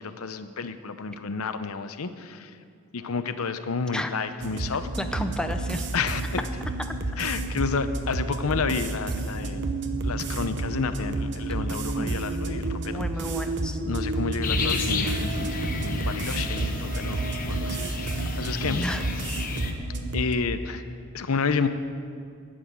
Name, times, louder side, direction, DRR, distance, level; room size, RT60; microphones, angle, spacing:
voice 1, 0.0-2.5 2.9-4.9 5.9-6.4 7.2-9.7 10.0-13.0 13.8-18.8 20.1-20.8 21.1-21.7, left 5 dB, 80° left, 10 dB, 0.7 m, -30 dB
sound 1, 4.4-20.3, right 2 dB, 55° right, 0.8 m, -30 dB
voice 2, 5.0-5.9 12.0-12.2 12.9-13.8 18.7-19.0, left 1 dB, 5° left, 6 dB, 0.5 m, -32 dB
sound 2, 14.4-19.7, left 4 dB, 40° left, 1.0 m, -32 dB
12.0 x 7.9 x 9.4 m, 2.3 s
head